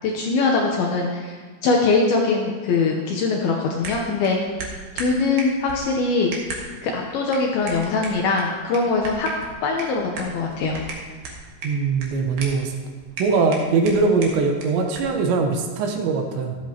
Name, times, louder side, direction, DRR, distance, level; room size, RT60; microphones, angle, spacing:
voice 1, 0.0-1.4 1.6-4.4 5.0-6.3 6.8-9.3 9.6-10.8, left 4 dB, 75° left, 0 dB, 2.4 m, -22 dB
sound 1, 3.8-15.2, right 3 dB, 60° right, 2.8 m, -37 dB
voice 2, 11.6-12.7 13.2-16.6, right 4 dB, 75° right, 3 dB, 3.2 m, -21 dB
14.0 x 12.5 x 2.9 m, 1.5 s
omnidirectional pair, 5.4 m